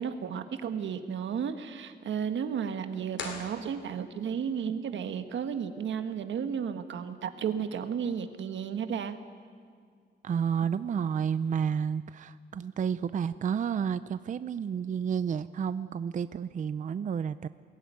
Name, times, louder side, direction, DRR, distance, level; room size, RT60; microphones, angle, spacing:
voice 1, 0.0-9.2 10.6-10.7, right 7 dB, 90° right, 8 dB, 1.5 m, -33 dB
sound 1, 3.1-4.3, left 4 dB, 85° left, 2.9 m, -41 dB
voice 2, 10.2-17.5, right 7 dB, 45° right, 14 dB, 0.5 m, -31 dB
22.0 x 16.5 x 9.5 m, 2.1 s
wide cardioid pair, 140°, 19 cm